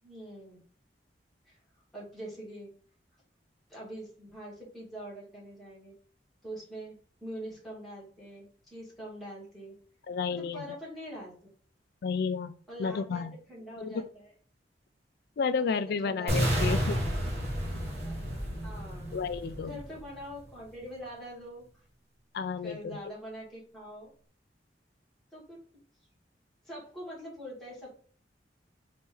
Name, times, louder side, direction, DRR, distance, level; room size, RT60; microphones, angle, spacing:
voice 1, 0.0-0.6 1.5-1.6 1.9-2.7 3.7-6.0 6.4-9.8 10.3-11.5 12.7-14.3 15.7-16.7 18.6-19.2 19.5-21.6 22.6-24.1 25.3-25.6 26.6-27.9, equal, ahead, 2.3 m, -44 dB
voice 2, 10.1-10.7 12.0-13.4 13.8-14.0 15.4-17.0 19.1-19.8 22.3-23.0, left 5 dB, 60° left, 0.3 m, -32 dB
sound 1, 16.3-20.3, equal, 35° right, 1.6 m, -31 dB
4.1 x 3.0 x 3.7 m
head